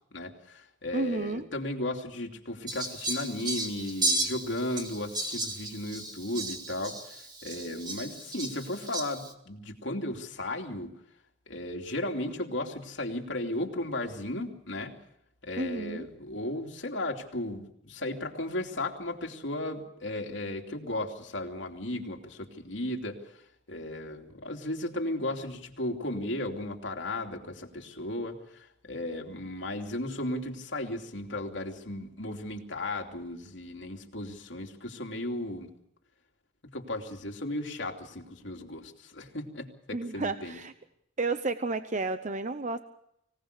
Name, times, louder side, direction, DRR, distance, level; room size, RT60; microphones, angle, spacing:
voice 1, 0.1-10.9 11.5-14.9 15.4-23.2 23.7-35.7 36.6-40.6, left 1 dB, 70° left, 2 dB, 3.0 m, -35 dB
voice 2, 0.9-1.5 15.6-16.1 39.9-40.7 41.2-42.8, right 3 dB, 40° right, 10 dB, 0.9 m, -31 dB
Fowl, 2.7-9.3, right 2 dB, 20° right, 2.3 m, -34 dB
25.0 x 18.0 x 6.8 m, 0.76 s
head